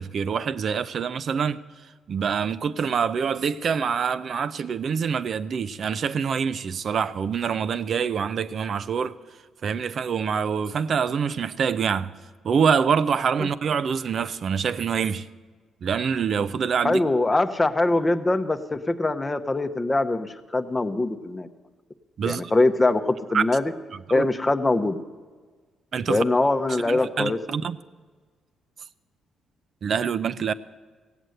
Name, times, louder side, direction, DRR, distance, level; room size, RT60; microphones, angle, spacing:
voice 1, 0.0-1.6 2.1-9.2 9.6-12.1 12.4-15.3 15.8-17.0 17.3-17.4 22.2-22.5 23.3-23.4 24.1-24.3 25.9-26.2 26.9-27.8 29.8-30.5, right 6 dB, 55° right, 0.5 m, -25 dB
voice 2, 16.8-21.5 22.2-23.7 24.1-25.0 26.1-27.4, left 2 dB, 20° left, 0.8 m, -23 dB
16.5 x 8.1 x 7.8 m
cardioid pair, 90°, 0 cm